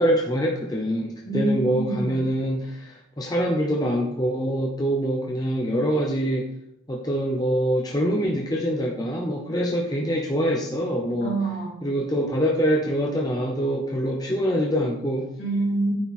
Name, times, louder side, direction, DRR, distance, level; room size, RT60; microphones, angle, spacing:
voice 1, 0.0-6.5 6.9-11.3 11.8-15.3, equal, 20° left, -1 dB, 0.7 m, -24 dB
voice 2, 1.2-2.1 11.2-11.7 15.4-15.9, right 2 dB, 65° left, -4 dB, 3.3 m, -25 dB
9.3 x 4.4 x 4.1 m, 0.78 s
head